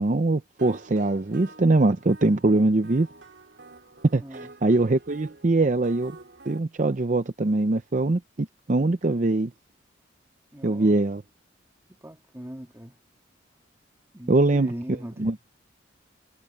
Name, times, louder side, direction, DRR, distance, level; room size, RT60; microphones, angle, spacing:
voice 1, 0.0-3.1 4.1-6.1 6.5-9.5 10.6-11.2 14.3-14.7 15.2-15.4, right 2 dB, 40° right, 0.6 m, -22 dB
sound 1, 0.6-6.6, right 2 dB, 65° right, 3.2 m, -48 dB
voice 2, 4.2-4.5 10.5-11.0 12.0-13.0 14.1-15.4, equal, 15° right, 2.1 m, -40 dB
head